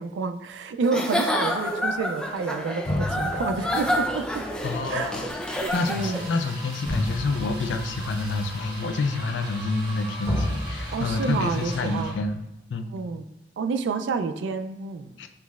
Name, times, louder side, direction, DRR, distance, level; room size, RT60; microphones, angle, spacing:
voice 1, 0.0-4.4 4.9-5.2 5.5-6.2 10.9-12.2 12.9-13.2 13.6-15.1, right 4 dB, 90° right, 9 dB, 0.3 m, -29 dB
Giggle / Chuckle chortle, 0.8-6.3, left 1 dB, 5° left, 0.4 m, -28 dB
sound 1, 2.9-10.0 10.2-12.3, left 1 dB, 30° left, 1.0 m, -33 dB
voice 2, 4.6-12.4 12.7-12.9 15.2-15.3, left 3 dB, 90° left, 7 dB, 0.4 m, -28 dB
sound 2, 5.6-12.3, right 1 dB, 60° right, 1.1 m, -40 dB
5.6 x 3.1 x 2.3 m, 0.97 s
head